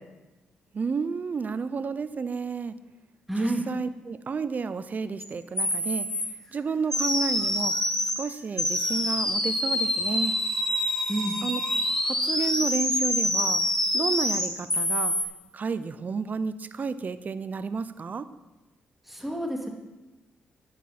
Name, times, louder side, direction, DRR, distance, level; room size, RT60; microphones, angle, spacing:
voice 1, 0.7-2.7 3.3-6.1 6.5-7.7 8.2-10.4 11.4-11.6 12.0-13.6 13.9-15.1 15.5-18.3, right 5 dB, 45° right, 14 dB, 0.7 m, -31 dB
voice 2, 3.3-3.6 11.1-11.4 19.1-19.7, right 1 dB, 5° right, 1 dB, 2.6 m, -29 dB
sound 1, 5.2-5.3 5.6-6.3 6.9-8.2 8.6-15.2, left 1 dB, 15° left, 2.4 m, -26 dB
12.0 x 9.9 x 4.3 m, 1.1 s
supercardioid pair, 55°, 4 cm